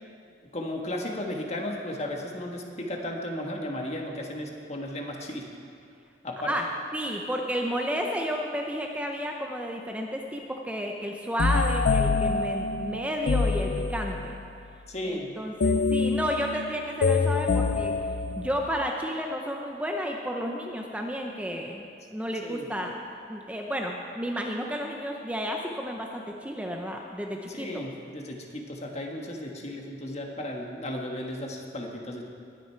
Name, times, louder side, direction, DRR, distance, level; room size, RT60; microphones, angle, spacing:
voice 1, 0.5-5.5 6.2-6.5 14.9-15.4 22.4-22.7 27.5-32.3, left 1 dB, 40° left, 1 dB, 1.5 m, -35 dB
voice 2, 6.9-14.3 15.0-17.9 18.4-21.8 22.1-23.0 23.3-27.8, equal, 10° right, 1 dB, 0.7 m, -32 dB
sound 1, 11.4-14.4 15.6-18.9, left 4 dB, 60° left, 0.5 m, -26 dB
20.5 x 9.1 x 4.5 m, 2.4 s
head